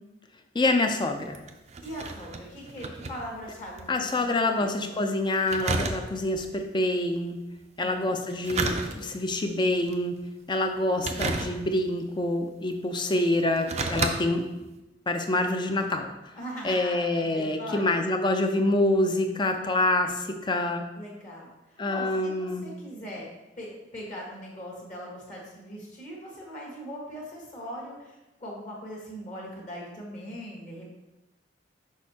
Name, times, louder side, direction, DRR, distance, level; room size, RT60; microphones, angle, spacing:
voice 1, 0.5-1.4 3.9-7.4 7.8-10.2 10.5-14.5 15.1-16.1 16.6-20.8 21.8-22.7, left 2 dB, 25° left, 5 dB, 0.5 m, -26 dB
sound 1, 1.1-3.9 4.2-4.3 5.5-6.4 8.2-9.3 9.9-10.2 11.0-11.9 12.7-12.8 13.4-14.1 14.6-14.7, right 3 dB, 35° right, 0.4 m, -31 dB
voice 2, 1.8-4.7 7.8-8.2 16.3-18.0 20.9-23.3 23.6-30.9, equal, 40° left, -3 dB, 1.3 m, -40 dB
6.4 x 5.4 x 2.8 m, 1.0 s
head